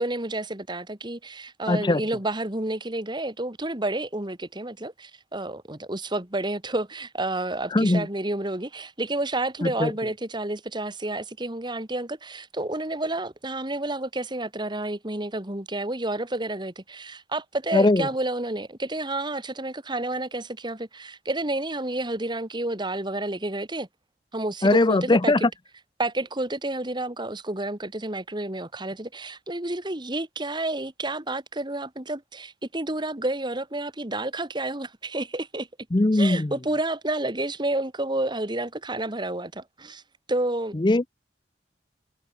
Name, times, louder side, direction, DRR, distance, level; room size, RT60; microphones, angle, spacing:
voice 1, 0.0-23.9 24.3-25.3 26.0-35.7 36.1-40.0 40.3-40.8, right 2 dB, 25° right, 2.2 m, -30 dB
voice 2, 1.7-2.0 7.7-8.1 9.6-9.9 17.7-18.1 24.6-25.5 35.9-36.5 40.7-41.1, left 2 dB, 25° left, 0.6 m, -20 dB
head